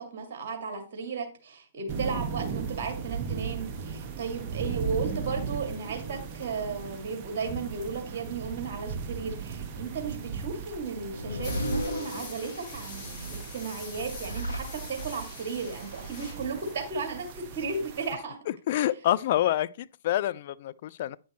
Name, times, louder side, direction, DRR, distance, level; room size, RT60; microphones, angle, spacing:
voice 1, 0.0-18.4 18.7-18.9, right 5 dB, 50° right, 2.2 m, -35 dB
sound 1, 1.9-18.1, right 5 dB, 30° right, 1.2 m, -37 dB
sound 2, 10.8-12.8 13.8-15.3, equal, 90° left, 1.2 m, -35 dB
sound 3, 11.4-16.7, left 3 dB, 35° left, 3.6 m, -45 dB
voice 2, 18.7-21.2, left 13 dB, 50° left, 0.4 m, -27 dB
9.1 x 6.2 x 3.0 m
hypercardioid pair, 125°, 0 cm